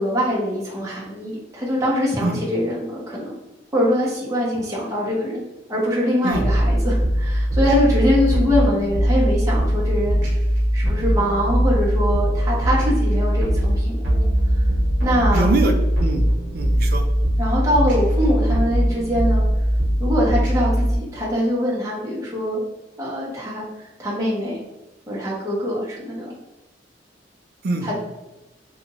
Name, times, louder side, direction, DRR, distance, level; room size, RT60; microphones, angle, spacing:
voice 1, 0.0-3.3 3.7-5.4 5.7-10.2 10.7-14.3 15.0-15.5 17.4-19.4 20.0-22.6 23.0-23.6 24.0-24.6 25.1-26.3 27.8-27.9, equal, 15° right, -6 dB, 0.9 m, -23 dB
sound 1, 6.3-21.0, equal, 80° right, 1.0 m, -20 dB
voice 2, 15.3-16.2 16.5-17.0 27.6-27.9, right 2 dB, 55° right, 5 dB, 0.4 m, -23 dB
2.5 x 2.3 x 3.0 m, 1.0 s
head